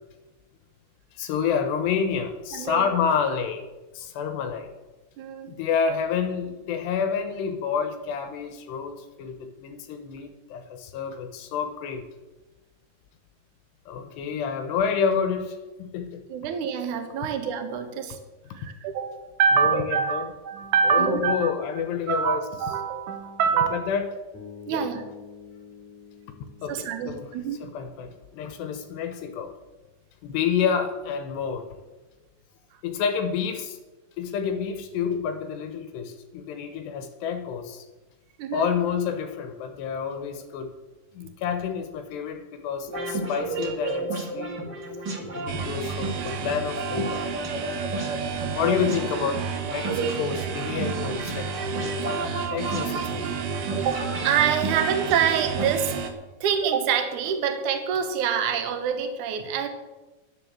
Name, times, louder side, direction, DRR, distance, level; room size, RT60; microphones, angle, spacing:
voice 1, 1.1-3.7 3.9-4.7 5.5-12.0 13.9-16.2 19.6-20.2 20.8-22.4 23.7-24.1 24.7-24.8 26.6-27.3 27.6-29.5 30.2-31.7 32.8-33.8 34.2-37.9 38.5-40.7 41.1-44.5 45.3-47.2 48.6-51.5 52.5-53.2, left 7 dB, 80° left, 6 dB, 3.1 m, -29 dB
voice 2, 2.5-2.9 5.2-5.5 16.3-18.2 18.5-21.5 22.1-23.8 24.7-25.0 26.7-27.9 38.4-38.7 53.8-55.9 56.4-59.7, right 7 dB, 60° right, 6 dB, 2.4 m, -25 dB
Bass guitar, 24.3-28.4, left 6 dB, 15° left, 3.1 m, -47 dB
sound 1, 42.9-55.6, right 2 dB, 35° right, 1.9 m, -32 dB
sound 2, 45.5-56.1, right 7 dB, 80° right, 3.6 m, -32 dB
11.5 x 10.5 x 7.4 m, 1.2 s
omnidirectional pair, 4.9 m